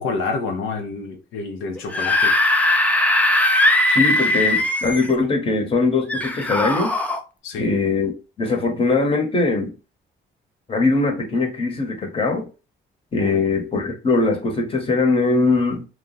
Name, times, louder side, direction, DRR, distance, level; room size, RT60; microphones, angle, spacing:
voice 1, 0.0-2.3 7.4-7.7 13.2-13.4, left 4 dB, 90° left, 0.6 m, -28 dB
Screaming / Screech, 1.8-5.1 6.1-7.2, left 1 dB, 5° left, 0.4 m, -19 dB
voice 2, 3.9-6.9 7.6-9.7 10.7-12.5 13.1-15.9, left 3 dB, 30° left, 0.9 m, -21 dB
2.3 x 2.0 x 3.8 m
cardioid pair, 90°, 20 cm